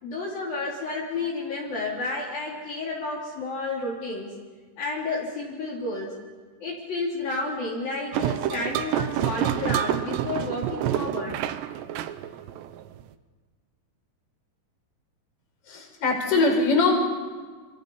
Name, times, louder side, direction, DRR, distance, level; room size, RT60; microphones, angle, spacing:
voice 1, 0.0-4.3 4.8-6.2 6.6-11.4, left 3 dB, 50° left, -4 dB, 5.2 m, -31 dB
sound 1, 8.1-13.0, right 11 dB, 75° right, 2.8 m, -28 dB
voice 2, 15.7-16.9, left 3 dB, 30° left, 0 dB, 5.6 m, -22 dB
29.5 x 27.0 x 5.7 m, 1.4 s
omnidirectional pair, 5.5 m